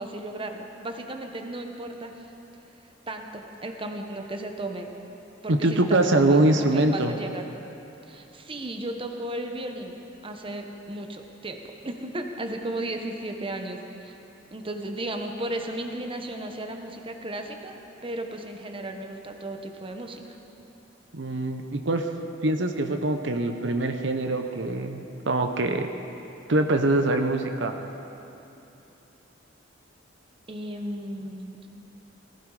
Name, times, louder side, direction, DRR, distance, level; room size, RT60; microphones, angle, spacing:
voice 1, 0.0-2.3 3.1-4.9 5.4-7.5 8.0-10.0 10.2-14.2 14.5-20.2 30.5-31.7, right 1 dB, 30° right, 4 dB, 1.1 m, -35 dB
voice 2, 5.5-7.1 21.1-22.1 22.4-25.9 26.5-27.8, right 2 dB, 70° right, 6 dB, 0.9 m, -23 dB
19.0 x 15.0 x 4.9 m, 2.9 s
head